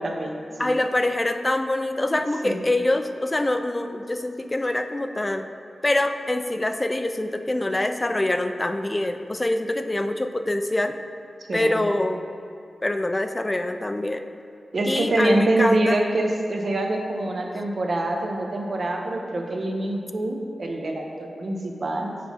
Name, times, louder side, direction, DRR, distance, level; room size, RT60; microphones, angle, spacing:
voice 1, 0.0-0.7 2.4-2.6 11.5-11.9 14.7-22.2, right 2 dB, 50° right, 1 dB, 0.7 m, -25 dB
voice 2, 0.6-5.5 5.8-11.0 11.5-12.2 12.8-14.2 14.9-16.0, left 1 dB, 20° left, 7 dB, 0.3 m, -25 dB
7.4 x 3.0 x 5.5 m, 2.5 s
wide cardioid pair, 105°, 0 cm